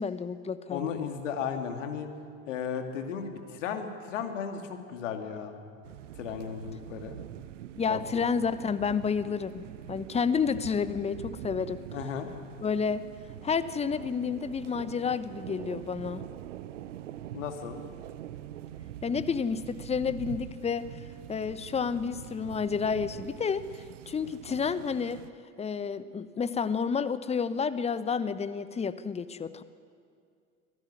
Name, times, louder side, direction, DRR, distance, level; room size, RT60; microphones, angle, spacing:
voice 1, 0.0-0.9 7.8-11.8 12.6-13.1 13.4-16.2 19.0-20.8 21.3-25.2 25.6-29.6, left 6 dB, 15° left, 14 dB, 1.0 m, -30 dB
voice 2, 0.7-2.1 2.5-5.6 6.2-7.2 7.9-8.2 11.9-12.3 17.3-17.8, left 7 dB, 65° left, 6 dB, 2.6 m, -35 dB
sound 1, 5.8-25.3, right 12 dB, 65° right, 0.9 m, -44 dB
25.0 x 17.0 x 9.9 m, 2.3 s
figure-of-eight pair, 75°, 40 cm